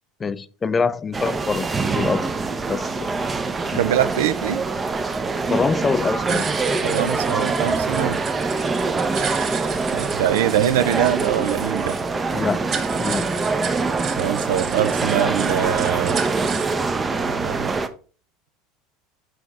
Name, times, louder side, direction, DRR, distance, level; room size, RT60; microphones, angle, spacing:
voice 1, 0.2-2.3 2.7-3.1 3.7-3.8 5.5-6.5 12.3-12.6 13.0-13.3, left 5 dB, 25° left, 0.4 m, -24 dB
sound 1, 1.1-17.9, right 4 dB, 25° right, 0.6 m, -24 dB
voice 2, 3.7-4.6 6.8-8.2 9.9-12.0 14.2-16.2 17.1-17.8, right 11 dB, 80° right, 0.4 m, -23 dB
sound 2, 6.3-16.7, right 7 dB, 45° right, 0.9 m, -34 dB
5.9 x 4.9 x 3.6 m
hypercardioid pair, 90°, 0 cm